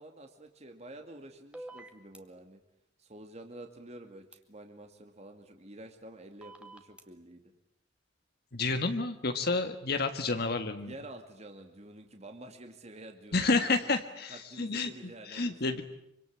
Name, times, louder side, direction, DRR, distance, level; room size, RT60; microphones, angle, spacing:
voice 1, 0.0-2.6 3.0-7.4 10.8-13.9 14.3-15.8, right 1 dB, 35° right, 5 dB, 2.4 m, -49 dB
sound 1, 1.5-2.2 4.3-4.4 6.4-7.0, right 2 dB, 5° right, 2.4 m, -46 dB
voice 2, 8.5-10.9 13.3-14.9 15.3-15.8, left 3 dB, 55° left, 7 dB, 1.6 m, -30 dB
26.0 x 25.5 x 8.7 m, 0.77 s
head